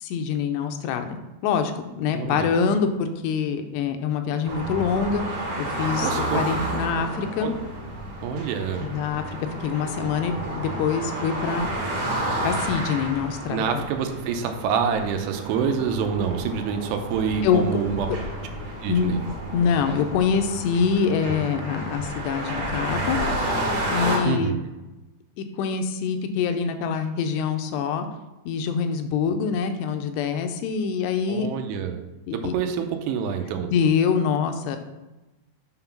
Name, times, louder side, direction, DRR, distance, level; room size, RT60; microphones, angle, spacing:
voice 1, 0.0-5.3 5.6-7.5 8.8-9.4 9.6-11.7 12.4-13.8 17.4-17.6 18.9-19.2 19.5-23.2 23.9-24.5 25.4-28.1 28.5-31.5 32.3-32.5 33.7-34.8, left 6 dB, 85° left, 7 dB, 2.8 m, -25 dB
voice 2, 2.1-2.7 6.0-6.4 7.4-7.5 8.2-8.9 13.5-18.1 18.8-19.2 24.2-24.6 31.3-32.0 32.3-33.7, right 7 dB, 90° right, 5 dB, 2.9 m, -27 dB
sound 1, 4.5-24.2, right 1 dB, 50° right, 2.6 m, -31 dB
7.9 x 3.8 x 5.8 m, 1.0 s
omnidirectional pair, 4.8 m